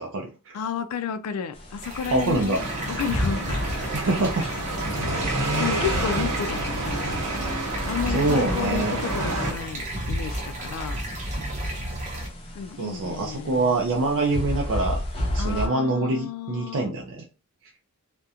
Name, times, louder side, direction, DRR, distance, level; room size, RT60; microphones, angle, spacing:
voice 1, 0.0-0.6 2.1-2.6 3.9-4.5 8.1-9.0 12.8-15.0 15.3-17.2, right 2 dB, 60° right, 0.4 m, -25 dB
voice 2, 0.5-2.6 2.9-3.4 3.7-3.8 5.6-7.2 7.8-11.0 12.6-13.8 15.4-16.9, left 7 dB, 85° left, 0.3 m, -32 dB
sound 1, 1.5-15.7, left 1 dB, 25° left, 0.6 m, -36 dB
sound 2, 1.8-12.3, equal, 35° right, 0.7 m, -32 dB
sound 3, 2.6-9.5, right 2 dB, 80° right, 0.8 m, -29 dB
2.4 x 2.1 x 2.7 m
head